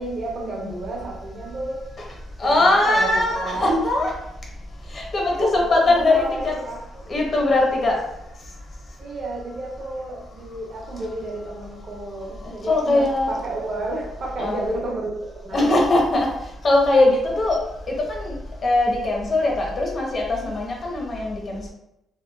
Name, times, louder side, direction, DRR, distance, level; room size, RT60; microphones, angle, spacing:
voice 1, 0.0-1.8 2.4-3.9 5.5-7.1 9.0-15.8, right 2 dB, 55° right, -2 dB, 0.8 m, -30 dB
voice 2, 2.4-4.1 4.9-6.5 7.1-8.0 12.6-13.4 14.4-14.6 15.5-16.3 16.6-17.6 17.9-18.4 18.6-21.7, left 2 dB, 45° left, -1 dB, 0.8 m, -20 dB
2.9 x 2.2 x 2.3 m, 0.85 s
cardioid pair, 90°, 0 cm